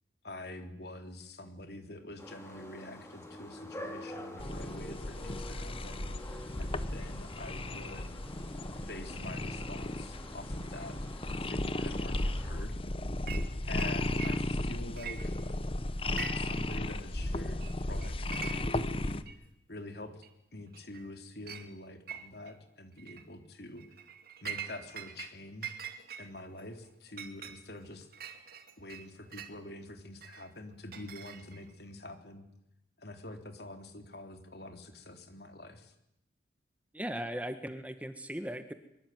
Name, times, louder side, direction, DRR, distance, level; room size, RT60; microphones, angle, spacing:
voice 1, 0.2-6.3 6.6-8.1 8.9-11.0 11.4-12.8 13.7-15.3 16.3-17.6 17.9-19.2 19.7-20.2 20.5-23.8 24.4-25.8 26.2-28.1 28.8-32.5 33.0-35.9, left 1 dB, 60° left, 7 dB, 3.5 m, -46 dB
sound 1, 2.2-12.6, left 1 dB, 15° left, 4.4 m, -48 dB
sound 2, 4.4-19.2, left 1 dB, 30° left, 1.1 m, -35 dB
Chink clink, 13.3-13.5 13.8-14.7 15.0-15.7 16.0-16.6 16.9-17.0 17.6-17.7 18.0-18.8 19.3-19.4 20.2-20.3 20.7-21.1 21.5-21.7 22.1-22.6 23.0-23.2 23.8-25.3 25.6-29.6 30.2-31.7, right 7 dB, 50° right, 2.5 m, -44 dB
voice 2, 36.9-38.7, equal, 10° right, 9 dB, 1.4 m, -38 dB
24.0 x 23.5 x 9.5 m, 0.82 s
head